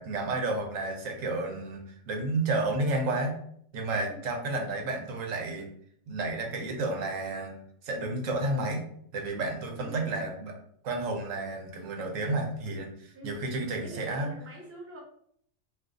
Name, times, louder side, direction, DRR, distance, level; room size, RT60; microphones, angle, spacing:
voice 1, 0.0-3.4 3.7-5.7 6.1-7.6 7.8-8.8 9.1-10.5 10.8-14.3, right 2 dB, 85° right, 2 dB, 1.1 m, -31 dB
voice 2, 9.8-10.3 13.1-13.4 13.8-15.0, right 2 dB, 15° right, -2 dB, 0.5 m, -45 dB
2.5 x 2.5 x 3.6 m, 0.65 s
omnidirectional pair, 1.3 m